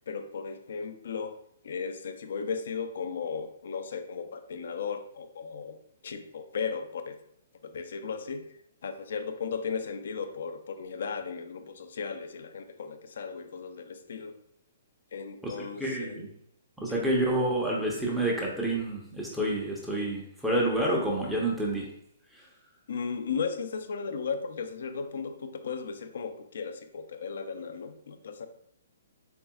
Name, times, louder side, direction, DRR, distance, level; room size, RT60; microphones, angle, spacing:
voice 1, 0.1-1.4 1.6-5.8 6.0-7.2 7.6-8.5 8.8-14.3 15.1-16.2 16.9-17.2 22.9-28.5, left 5 dB, 65° left, 8 dB, 0.5 m, -36 dB
voice 2, 15.8-16.3 16.8-21.9, right 1 dB, 5° right, -3 dB, 0.8 m, -28 dB
4.4 x 3.3 x 2.3 m, 0.70 s
hypercardioid pair, 135°, 0 cm